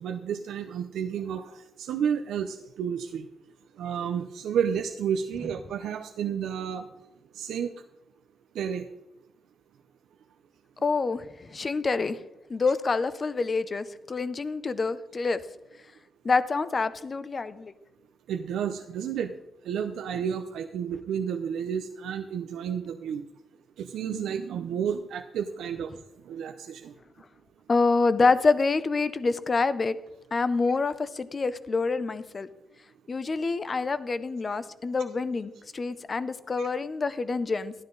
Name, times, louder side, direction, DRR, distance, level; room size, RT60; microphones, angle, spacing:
voice 1, 0.0-3.3 3.8-6.9 7.3-7.7 8.5-8.9 18.3-19.3 19.6-23.2 23.8-25.9 26.3-26.9 36.6-36.7, right 8 dB, 90° right, 5 dB, 0.6 m, -31 dB
voice 2, 10.8-12.2 12.5-15.4 16.2-17.7 27.7-30.0 30.3-32.5 33.1-37.7, left 4 dB, 25° left, 15 dB, 0.5 m, -27 dB
13.0 x 11.5 x 3.9 m, 0.93 s
wide cardioid pair, 180°, 0 cm